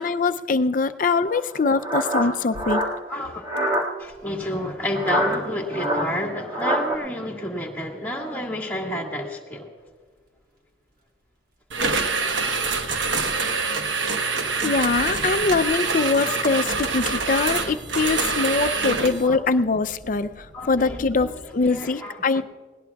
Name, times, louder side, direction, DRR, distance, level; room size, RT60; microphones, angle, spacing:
voice 1, 0.0-2.8 14.6-22.4, left 4 dB, 45° left, 10 dB, 0.5 m, -23 dB
sound 1, 1.3-3.9 4.9-7.0, equal, 25° right, 1.9 m, -25 dB
voice 2, 3.1-3.4 4.0-9.7 18.8-18.9 19.2-19.4 20.5-21.3 21.6-22.4, equal, 10° left, 0 dB, 1.8 m, -30 dB
sound 2, 4.0-6.2 9.8-10.2 10.7-11.0 12.3-12.4 13.1-13.2 13.4-13.7 14.4-21.8, equal, 50° right, 1.3 m, -44 dB
sound 3, 11.7-19.3, right 4 dB, 70° right, 1.1 m, -25 dB
20.0 x 18.0 x 2.3 m, 1.5 s
head